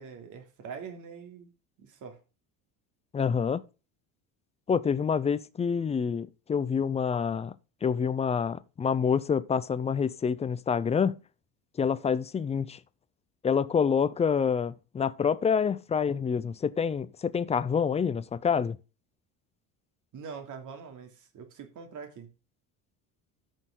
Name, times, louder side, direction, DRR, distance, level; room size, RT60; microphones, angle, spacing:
voice 1, 0.0-1.5 1.8-2.2 20.1-22.3, right 6 dB, 50° right, 2.7 m, -43 dB
voice 2, 3.1-3.6 4.7-7.5 7.8-11.2 11.8-12.8 13.4-18.8, left 6 dB, 15° left, 0.4 m, -27 dB
13.0 x 6.5 x 3.7 m
cardioid pair, 150°, 40 cm